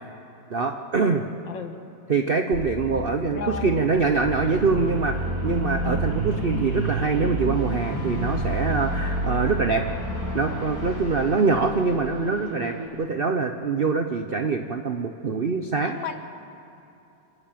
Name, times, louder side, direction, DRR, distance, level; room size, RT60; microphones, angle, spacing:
voice 1, 0.5-1.2 2.1-9.8 10.3-16.0, right 4 dB, 55° right, 6 dB, 0.6 m, -24 dB
sound 1, 2.5-11.6, right 1 dB, 10° right, 2.9 m, -29 dB
voice 2, 3.3-3.7 15.9-16.2, left 6 dB, 70° left, 7 dB, 2.0 m, -33 dB
sound 2, 4.2-12.9, right 1 dB, 35° right, 5.2 m, -38 dB
27.5 x 13.5 x 9.0 m, 2.9 s
omnidirectional pair, 2.1 m